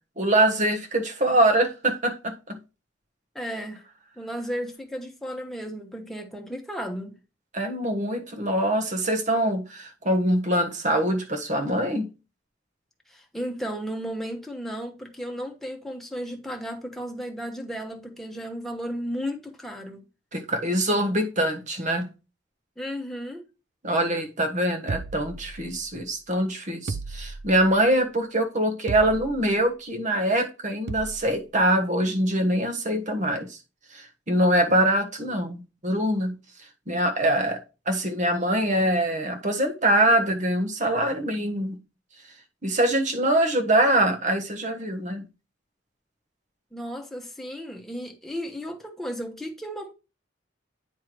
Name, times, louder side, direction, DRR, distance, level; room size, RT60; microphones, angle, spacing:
voice 1, 0.2-2.6 7.5-12.1 20.3-22.1 23.8-33.6 33.9-36.3 36.9-41.8 42.6-45.3, right 1 dB, 40° right, 1.3 m, -24 dB
voice 2, 3.3-3.8 4.2-7.1 13.1-20.0 22.8-23.5 46.7-49.9, equal, ahead, 1.2 m, -34 dB
sound 1, 24.9-26.0 26.9-27.8 28.9-29.6 30.9-31.4, right 4 dB, 60° right, 0.5 m, -35 dB
9.5 x 3.5 x 4.6 m
head